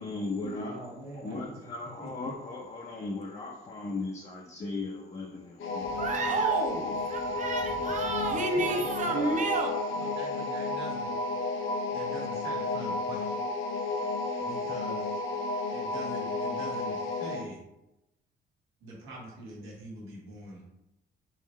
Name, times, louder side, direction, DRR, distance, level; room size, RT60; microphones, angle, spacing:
voice 1, 0.0-0.7 1.2-6.0 6.8-6.9, left 3 dB, 35° left, -1 dB, 0.6 m, -37 dB
voice 2, 0.6-1.7 2.0-2.3 8.4-9.3 9.9-11.1 11.9-13.4 14.4-15.2 15.7-17.6 18.8-20.6, right 1 dB, 85° right, -3 dB, 1.3 m, -44 dB
sound 1, 5.6-17.5, left 3 dB, 90° left, 0.6 m, -32 dB
voice 3, 5.8-9.7, right 3 dB, 40° right, 3 dB, 0.7 m, -30 dB
3.8 x 3.1 x 3.1 m, 0.90 s
cardioid pair, 90°, 20 cm